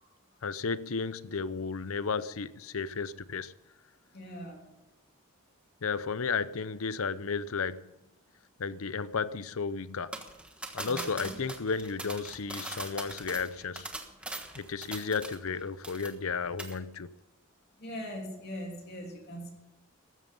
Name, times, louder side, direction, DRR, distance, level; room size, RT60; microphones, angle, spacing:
voice 1, 0.4-3.5 5.8-7.8 8.6-10.2 10.7-13.9 14.6-17.1, left 5 dB, 70° left, 0.7 m, -33 dB
voice 2, 4.1-4.6 10.7-11.4 17.8-19.5, equal, 45° left, 3.2 m, -41 dB
sound 1, 10.1-15.6 15.8-16.3 16.6-16.8, right 1 dB, 5° right, 1.3 m, -41 dB
15.0 x 13.0 x 5.4 m
head